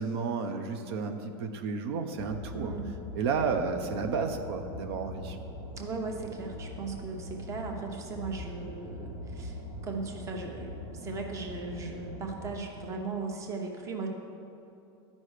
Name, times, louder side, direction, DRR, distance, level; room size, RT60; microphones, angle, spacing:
voice 1, 0.0-2.8 3.1-5.4, right 5 dB, 70° right, 6 dB, 0.7 m, -32 dB
sound 1, 2.2-12.5, equal, 90° right, 2.0 m, -42 dB
voice 2, 2.5-2.9 5.8-14.1, right 4 dB, 20° right, 2 dB, 0.9 m, -37 dB
12.5 x 5.4 x 4.9 m, 2.8 s
supercardioid pair, 160°, 14 cm